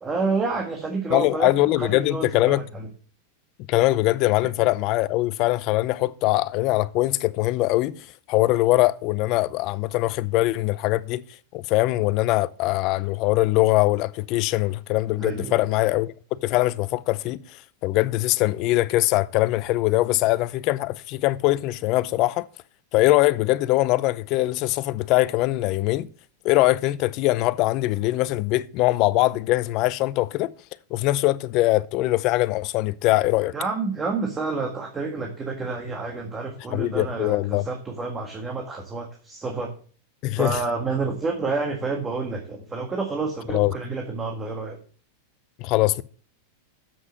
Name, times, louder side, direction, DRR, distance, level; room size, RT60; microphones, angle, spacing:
voice 1, 0.0-2.9 15.2-15.6 33.5-39.7 40.4-44.8, right 3 dB, 20° right, 1.7 m, -29 dB
voice 2, 1.1-2.6 3.7-8.0 8.3-11.2 11.5-16.1 16.4-17.4 17.8-22.5 22.9-26.1 26.4-30.5 30.9-33.5 36.7-37.7 40.2-40.6 43.5-43.7 45.6-46.0, left 18 dB, 50° left, 0.5 m, -22 dB
7.7 x 6.2 x 6.3 m
hypercardioid pair, 115°, 0 cm